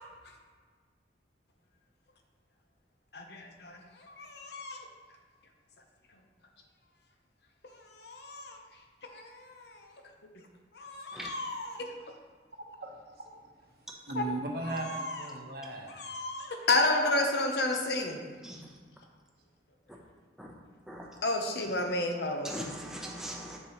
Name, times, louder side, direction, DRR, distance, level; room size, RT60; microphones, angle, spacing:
voice 1, 3.1-3.8 4.0-4.8 8.0-8.6 9.1-9.7 10.7-11.9 14.2-14.3 14.9-15.2 16.0-18.2 21.2-22.5, left 2 dB, 65° left, 3 dB, 0.8 m, -31 dB
voice 2, 12.5-13.7 14.1-15.9 16.9-17.3 17.7-17.8 18.2-18.4, right 2 dB, 60° right, 1 dB, 0.9 m, -39 dB
voice 3, 22.4-23.6, equal, 5° right, -2 dB, 0.8 m, -40 dB
6.6 x 6.5 x 3.0 m, 1.5 s
head